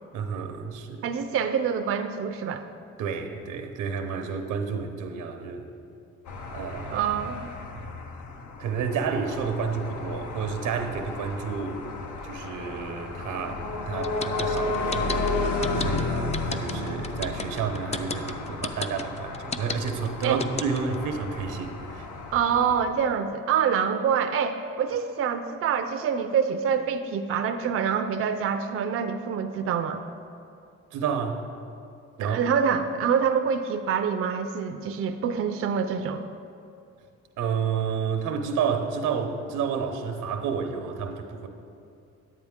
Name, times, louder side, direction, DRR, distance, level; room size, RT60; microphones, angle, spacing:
voice 1, 0.1-1.1 3.0-5.6 6.5-7.0 7.7-7.8 8.6-11.8 12.2-22.1 30.9-31.4 32.2-32.4 37.4-41.5, right 6 dB, 85° right, 6 dB, 0.8 m, -30 dB
voice 2, 1.0-2.6 6.9-7.5 20.2-20.4 22.3-30.0 32.2-36.2, right 7 dB, 50° right, 7 dB, 0.5 m, -26 dB
sound 1, 6.3-22.8, left 3 dB, 75° left, 0.9 m, -33 dB
sound 2, 14.0-21.0, left 4 dB, 20° left, 0.4 m, -32 dB
9.3 x 8.8 x 3.6 m, 2.5 s
cardioid pair, 90°, 30 cm